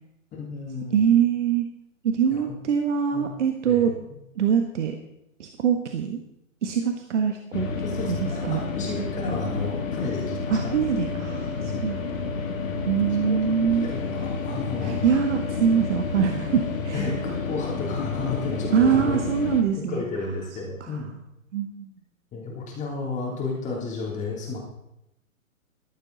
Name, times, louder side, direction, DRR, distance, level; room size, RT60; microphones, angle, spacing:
voice 1, 0.3-1.0 2.3-2.5 3.1-3.3 3.6-3.9 7.8-10.6 12.8-12.9 13.2-13.4 13.8-15.2 16.9-19.2 19.7-21.1 22.3-24.6, left 3 dB, 15° left, -2 dB, 3.1 m, -32 dB
voice 2, 0.9-1.7 2.0-3.9 4.4-5.0 5.4-6.2 6.6-7.7 8.1-8.2 8.4-8.6 10.5-12.0 12.8-13.9 14.8-17.0 18.7-20.0 20.8-21.0 21.5-21.9, right 7 dB, 60° right, 5 dB, 1.5 m, -23 dB
sound 1, 7.5-19.6, left 4 dB, 65° left, 2.6 m, -30 dB
15.0 x 11.5 x 4.0 m, 0.84 s
hypercardioid pair, 135°, 42 cm